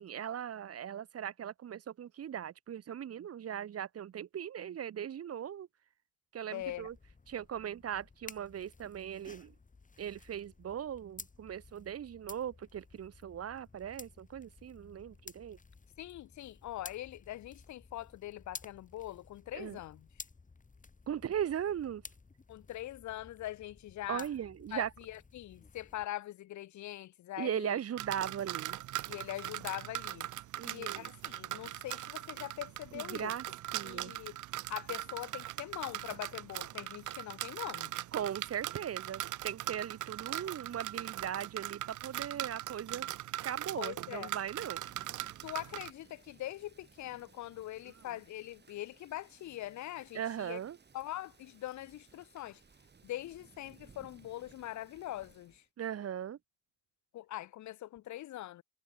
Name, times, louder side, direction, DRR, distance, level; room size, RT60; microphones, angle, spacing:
voice 1, 0.0-5.7 6.3-6.9 7.3-9.5 10.0-15.6 19.5-19.8 21.1-22.0 24.1-24.9 27.4-28.8 30.6-31.1 32.9-33.4 33.7-34.1 38.1-43.1 43.4-44.8 50.1-50.8 55.8-56.4, right 9 dB, 50° right, 1.3 m, -39 dB
voice 2, 6.5-6.9 16.0-20.1 22.5-24.3 24.7-27.8 29.1-30.3 30.6-33.3 33.8-34.4 34.7-37.9 43.8-44.3 45.4-50.6 50.9-52.6 53.0-55.6 57.1-58.6, left 14 dB, 70° left, 0.8 m, -42 dB
sound 1, 6.6-26.0, left 4 dB, 25° left, 3.7 m, -54 dB
sound 2, 28.0-45.9, right 14 dB, 80° right, 1.6 m, -40 dB
Thunder / Rain, 44.6-55.7, right 5 dB, 35° right, 7.0 m, -62 dB
cardioid pair, 90°, 30 cm